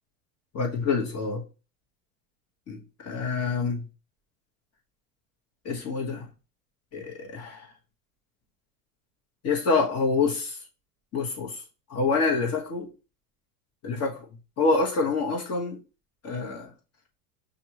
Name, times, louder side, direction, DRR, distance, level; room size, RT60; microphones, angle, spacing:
voice 1, 0.5-1.4 2.7-3.8 5.6-6.3 6.9-7.6 9.4-10.6 11.1-11.5 11.9-12.9 13.8-14.2 14.6-15.8 16.2-16.7, left 4 dB, 35° left, 1.5 m, -26 dB
5.8 x 2.7 x 3.0 m
hypercardioid pair, 95°, 42 cm